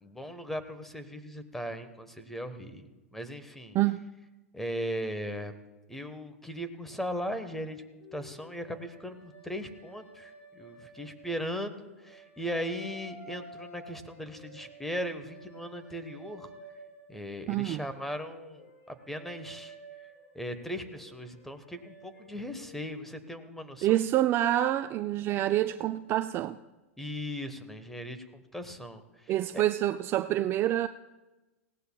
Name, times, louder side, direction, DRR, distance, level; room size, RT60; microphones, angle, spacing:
voice 1, 0.0-3.8 4.5-5.6 5.9-16.5 17.1-19.7 20.3-24.0 27.0-29.6, equal, 5° left, 9 dB, 1.1 m, -38 dB
voice 2, 3.7-4.1 17.5-17.9 23.8-26.6 29.3-30.9, right 13 dB, 30° right, 10 dB, 0.3 m, -27 dB
sound 1, 8.0-11.6 12.0-17.2 17.6-23.2, right 1 dB, 65° left, 5.3 m, -52 dB
19.5 x 17.0 x 2.3 m, 1.1 s
hypercardioid pair, 115°, 8 cm